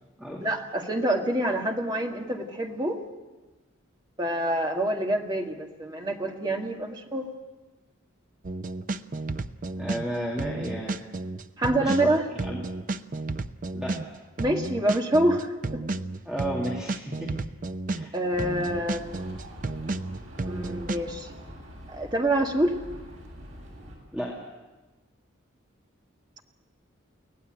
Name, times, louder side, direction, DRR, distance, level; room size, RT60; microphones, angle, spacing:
voice 1, 0.4-3.0 4.2-7.3 11.6-12.2 14.4-15.8 18.1-19.3 20.4-21.3 21.9-22.8, right 1 dB, 20° right, 2 dB, 1.9 m, -26 dB
sound 1, 8.4-10.1 10.4-14.1 14.4-18.1 18.4-21.0, right 2 dB, 40° right, 0.6 m, -32 dB
voice 2, 9.8-11.1 11.8-12.1 12.4-12.6 13.7-14.0 16.2-17.3 17.9-18.1 24.1-24.4, equal, 5° right, -3 dB, 2.5 m, -33 dB
sound 2, 18.3-24.0, equal, 75° right, 7.4 m, -44 dB
24.5 x 17.5 x 7.8 m, 1.2 s
head